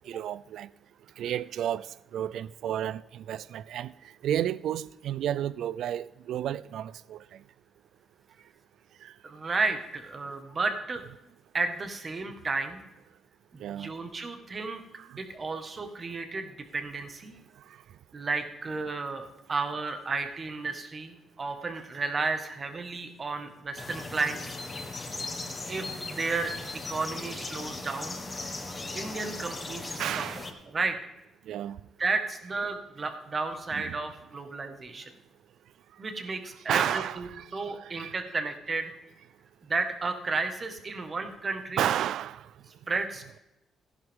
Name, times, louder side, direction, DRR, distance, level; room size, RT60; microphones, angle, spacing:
voice 1, 0.1-0.7 1.2-1.9 2.1-3.9 4.2-7.2 9.0-9.1 13.6-13.9 30.0-30.5 31.5-31.8 33.8-34.0 36.7-37.4 37.8-38.2 41.8-42.4, right 11 dB, 75° right, 0.3 m, -31 dB
voice 2, 9.2-11.0 11.5-12.8 13.5-14.8 15.2-17.3 18.1-24.6 25.7-26.5 26.9-28.2 28.9-30.2 30.7-31.0 32.0-35.1 36.0-38.9 39.6-41.9 42.9-43.4, right 3 dB, 35° right, 1.6 m, -32 dB
sound 1, 23.8-30.5, left 3 dB, 25° left, 1.7 m, -38 dB
15.5 x 10.5 x 3.7 m
cardioid pair, 90°, 0 cm